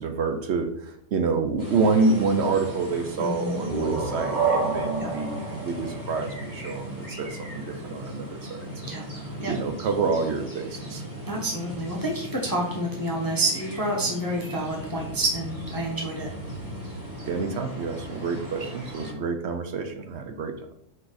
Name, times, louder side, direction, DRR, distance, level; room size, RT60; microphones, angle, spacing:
voice 1, 0.0-11.0 17.3-20.6, right 4 dB, 60° right, 7 dB, 0.7 m, -28 dB
sound 1, 1.6-19.1, equal, 10° right, 2.2 m, -38 dB
voice 2, 3.2-3.6 5.0-5.1 8.9-9.0 9.4-9.5 11.3-16.3, right 1 dB, 15° left, -1 dB, 0.9 m, -28 dB
sound 2, 3.4-6.9, right 4 dB, 35° right, 0.9 m, -29 dB
6.0 x 4.7 x 4.0 m, 0.74 s
omnidirectional pair, 1.7 m